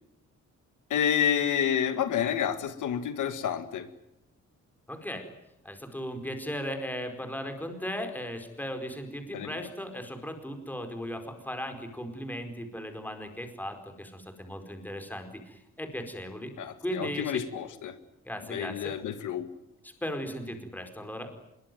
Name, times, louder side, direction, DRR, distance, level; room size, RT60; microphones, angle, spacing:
voice 1, 0.9-3.9 9.3-9.6 16.6-18.0 18.5-19.5, left 8 dB, 85° left, 10 dB, 2.0 m, -29 dB
voice 2, 4.9-5.3 5.6-16.5 16.8-17.4 18.2-18.9 19.8-21.3, equal, 5° left, 6 dB, 4.6 m, -37 dB
25.5 x 22.5 x 9.3 m, 0.84 s
wide cardioid pair, 145°, 30 cm